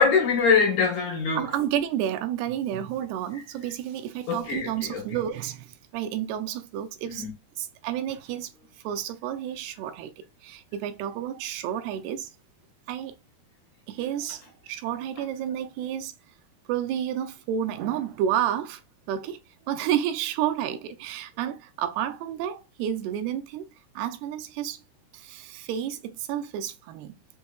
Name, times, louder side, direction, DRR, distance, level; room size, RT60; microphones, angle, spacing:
voice 1, 0.0-1.4 4.3-5.0 7.1-7.3, left 5 dB, 65° left, 2.1 m, -23 dB
voice 2, 1.4-7.3 7.6-8.5 8.8-12.3 12.9-13.1 13.9-16.1 16.7-18.8 19.1-19.4 19.7-23.7 24.0-24.8 25.1-27.1, right 10 dB, 85° right, 2.6 m, -30 dB
6.8 x 2.7 x 2.2 m
omnidirectional pair, 4.6 m